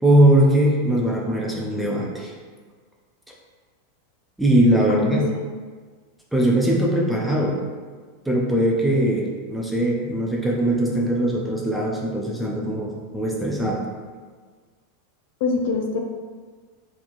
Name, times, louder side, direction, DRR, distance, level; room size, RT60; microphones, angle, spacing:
voice 1, 0.0-2.3 4.4-5.2 6.3-7.6 8.3-13.8, right 1 dB, ahead, -3 dB, 0.4 m, -20 dB
voice 2, 4.9-5.2 15.4-16.0, left 4 dB, 55° left, 2 dB, 0.5 m, -23 dB
4.0 x 2.9 x 2.6 m, 1.5 s
supercardioid pair, 170°, 0 cm